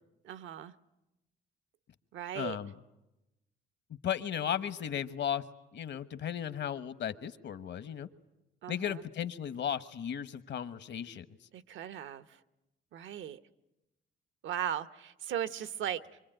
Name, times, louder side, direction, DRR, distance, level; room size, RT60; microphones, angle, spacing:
voice 1, 0.2-0.7 2.1-2.6 8.6-9.0 11.5-12.4 12.9-13.4 14.4-16.2, right 10 dB, 75° right, 14 dB, 1.0 m, -37 dB
voice 2, 2.3-2.7 4.0-5.4 5.7-8.1 8.7-11.2, left 9 dB, 65° left, 13 dB, 1.2 m, -35 dB
25.0 x 25.0 x 9.1 m, 0.96 s
cardioid pair, 90°, 20 cm